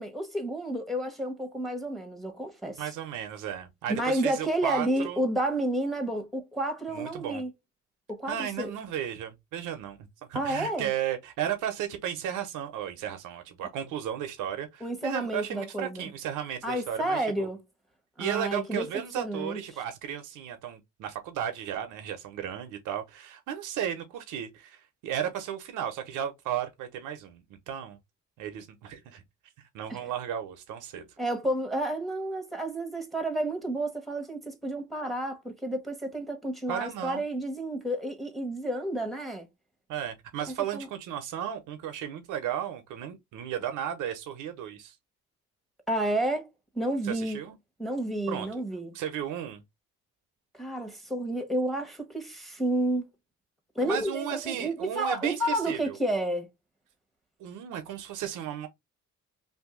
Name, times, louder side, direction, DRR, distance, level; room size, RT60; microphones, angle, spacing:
voice 1, 0.0-2.8 3.9-7.5 8.1-8.7 10.3-10.9 14.8-16.1 16.6-17.6 18.2-18.9 19.2-19.6 29.9-30.0 31.2-39.5 40.7-40.9 45.9-46.5 46.7-47.4 47.8-48.9 50.5-53.1 53.7-56.5, right 1 dB, ahead, 1.1 m, -30 dB
voice 2, 2.8-5.3 6.9-7.4 8.3-17.5 18.2-28.0 28.4-29.2 29.7-31.0 36.7-37.2 39.9-44.9 47.0-47.6 48.3-48.5 48.9-49.6 53.8-56.0 57.4-58.7, right 10 dB, 90° right, 0.7 m, -34 dB
2.7 x 2.6 x 3.6 m
cardioid pair, 90°, 30 cm